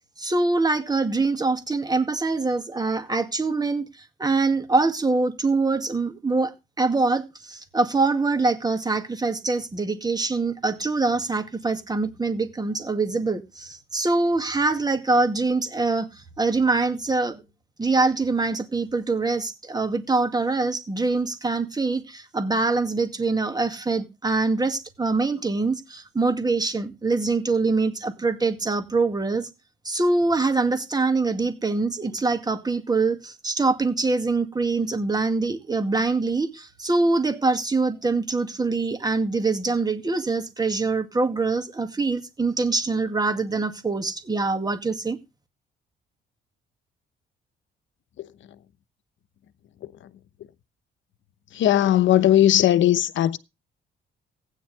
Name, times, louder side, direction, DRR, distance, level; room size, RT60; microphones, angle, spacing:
voice 1, 0.2-6.5 6.8-17.4 17.8-29.5 29.8-45.2, right 3 dB, 20° right, 2.1 m, -24 dB
voice 2, 51.6-53.4, left 12 dB, 70° left, 1.0 m, -18 dB
15.5 x 9.8 x 3.4 m
cardioid pair, 90°, 20 cm